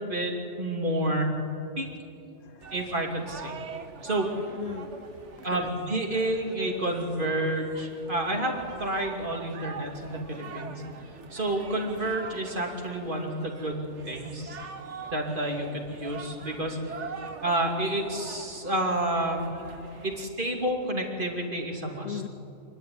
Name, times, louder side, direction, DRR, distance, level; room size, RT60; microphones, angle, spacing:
voice 1, 0.0-1.3 1.8-1.9 2.7-3.6 4.0-4.3 5.4-10.7 11.3-14.6 15.1-17.0 17.4-19.4 20.0-22.2, right 1 dB, 45° right, 1 dB, 2.9 m, -29 dB
voice 2, 2.4-2.7 4.6-5.7 19.8-20.0 22.0-22.3, left 7 dB, 70° left, 13 dB, 1.0 m, -39 dB
sound 1, 2.6-20.2, right 5 dB, 80° right, 1.4 m, -43 dB
27.0 x 11.0 x 9.7 m, 2.7 s
omnidirectional pair, 1.2 m